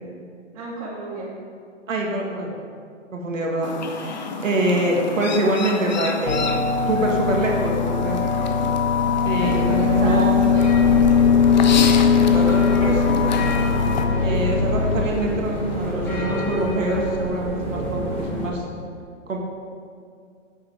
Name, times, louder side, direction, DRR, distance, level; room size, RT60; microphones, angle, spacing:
voice 1, 0.5-1.3 9.4-11.8 12.1-13.0, right 1 dB, 30° right, -5 dB, 2.5 m, -32 dB
voice 2, 1.9-2.5 3.1-6.5 6.9-8.2 9.2-10.3 12.3-12.9 14.2-18.7 19.3-19.4, right 1 dB, 90° right, -1 dB, 2.0 m, -25 dB
Chirp tweet, 3.6-14.0, left 5 dB, 35° left, 0.7 m, -31 dB
sound 1, 6.3-15.1, left 6 dB, 85° left, 0.9 m, -19 dB
sound 2, 9.4-18.5, right 1 dB, 5° left, 1.2 m, -28 dB
9.2 x 8.1 x 4.9 m, 2.2 s
hypercardioid pair, 160°, 38 cm